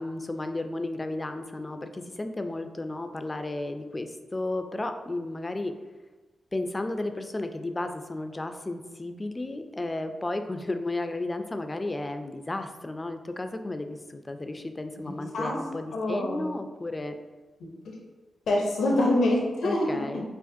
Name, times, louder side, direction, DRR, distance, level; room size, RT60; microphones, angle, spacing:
voice 1, 0.0-5.8 6.5-17.2 19.6-20.2, left 2 dB, 30° left, 7 dB, 0.4 m, -33 dB
voice 2, 15.1-15.6 15.9-16.5 17.6-18.0 18.5-20.2, left 1 dB, 75° left, -1 dB, 0.5 m, -26 dB
4.8 x 2.4 x 2.6 m, 1.2 s
supercardioid pair, 45°, 0 cm